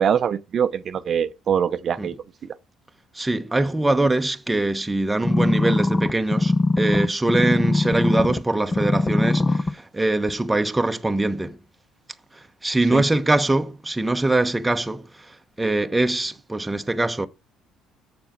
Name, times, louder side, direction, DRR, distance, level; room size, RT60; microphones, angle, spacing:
voice 1, 0.0-2.1 12.9-13.0, right 8 dB, 50° right, 0.7 m, -23 dB
voice 2, 3.1-11.6 12.3-17.3, right 2 dB, 10° right, 0.9 m, -23 dB
sound 1, 5.2-8.4 8.7-9.7 10.3-10.4, left 2 dB, 25° left, 0.8 m, -21 dB
7.0 x 7.0 x 4.4 m
supercardioid pair, 80°, 0 cm